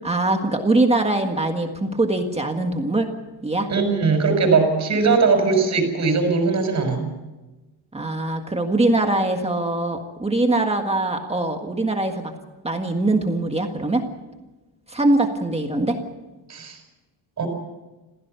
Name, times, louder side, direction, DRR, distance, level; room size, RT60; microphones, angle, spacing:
voice 1, 0.0-3.1 3.4-3.7 7.9-12.3 12.6-14.0 14.9-16.0, right 2 dB, 15° right, 4 dB, 1.7 m, -22 dB
voice 2, 3.7-7.1 16.5-16.8 17.4-17.5, right 4 dB, 35° right, 4 dB, 6.1 m, -20 dB
27.5 x 16.0 x 6.9 m, 1.1 s
wide cardioid pair, 180°, 46 cm